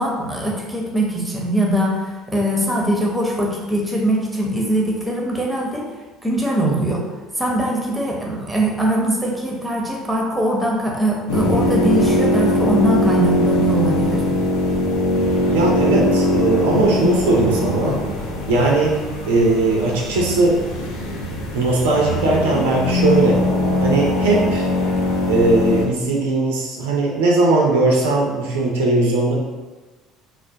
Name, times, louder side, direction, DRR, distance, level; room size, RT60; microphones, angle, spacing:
voice 1, 0.0-5.9 6.2-7.0 7.4-14.2, right 1 dB, 5° right, -2 dB, 0.6 m, -21 dB
sound 1, 11.3-25.9, left 1 dB, 70° left, 0.4 m, -21 dB
voice 2, 15.5-18.0 18.5-19.0 19.3-20.6 21.5-23.4 23.8-24.7 25.3-29.3, right 2 dB, 75° right, -2 dB, 0.4 m, -18 dB
2.3 x 2.0 x 2.6 m, 1.2 s
figure-of-eight pair, 60°, 0 cm